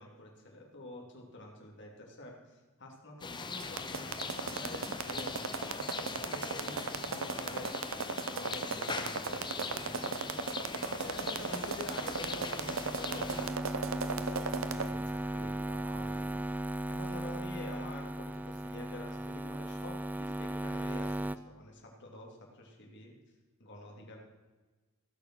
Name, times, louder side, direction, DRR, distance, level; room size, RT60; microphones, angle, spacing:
voice 1, 0.0-7.7 8.3-10.2 11.0-13.3 13.6-16.4 16.9-23.2 23.6-24.3, left 1 dB, 60° left, 0 dB, 3.0 m, -47 dB
sound 1, 3.2-13.5, left 4 dB, 20° left, 0.8 m, -41 dB
sound 2, 3.6-14.9, right 4 dB, 70° right, 0.9 m, -36 dB
sound 3, 9.7-21.4, right 1 dB, 10° right, 0.3 m, -38 dB
16.0 x 6.9 x 6.3 m, 1.2 s
head